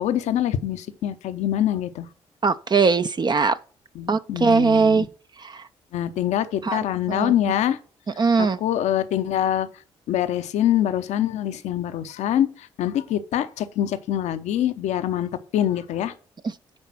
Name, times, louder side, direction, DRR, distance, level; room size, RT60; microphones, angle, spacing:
voice 1, 0.0-2.1 3.9-5.1 5.9-7.8 8.4-9.7 10.1-16.1, left 11 dB, 75° left, 0.8 m, -24 dB
voice 2, 2.4-3.6 4.1-5.1 5.5-5.6 6.6-6.8 7.1-7.3 8.2-8.6, right 4 dB, 40° right, 0.6 m, -20 dB
9.8 x 4.0 x 5.8 m
hypercardioid pair, 45°, 12 cm